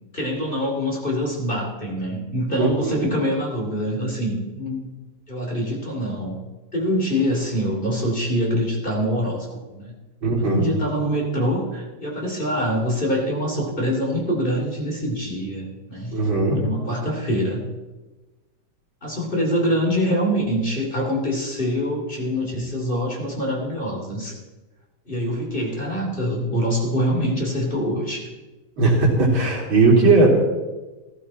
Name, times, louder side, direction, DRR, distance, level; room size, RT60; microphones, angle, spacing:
voice 1, 0.1-4.9 5.3-6.4 6.7-9.9 10.3-16.2 16.5-17.6 19.0-24.4 25.1-28.3, equal, 25° left, -1 dB, 3.0 m, -25 dB
voice 2, 2.6-3.2 10.2-10.7 16.1-16.6 28.8-30.3, right 3 dB, 70° right, -2 dB, 3.9 m, -18 dB
15.5 x 14.5 x 4.3 m, 1.2 s
omnidirectional pair, 2.3 m